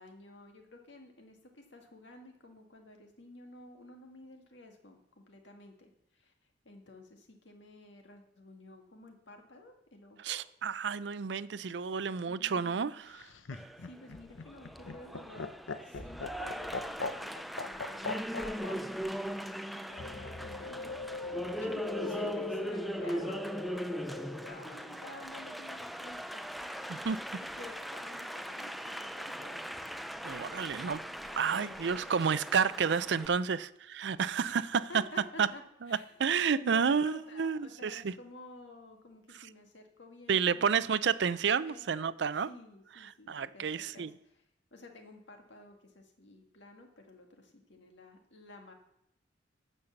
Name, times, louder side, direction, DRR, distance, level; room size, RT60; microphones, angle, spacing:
voice 1, 0.0-6.3 6.7-10.4 11.8-11.9 12.3-13.0 13.8-15.5 15.8-16.8 17.2-18.8 19.6-21.0 21.6-23.8 24.1-27.1 27.4-29.7 31.5-31.9 32.9-33.6 34.5-34.6 34.9-40.8 41.6-42.1 42.4-44.4 44.7-48.7, left 2 dB, 70° left, 1.8 m, -52 dB
voice 2, 10.2-13.2 26.9-27.2 30.2-31.0 31.3-34.9 35.4-35.5 35.9-38.1 40.3-42.5 43.3-44.1, right 6 dB, 65° right, 0.4 m, -30 dB
Laughter, 13.1-18.8 20.0-20.7, left 3 dB, 85° left, 0.8 m, -39 dB
Applause, 13.5-33.3, equal, ahead, 0.3 m, -40 dB
sound 1, 20.0-25.0, left 4 dB, 40° left, 0.6 m, -42 dB
13.0 x 5.5 x 7.1 m
head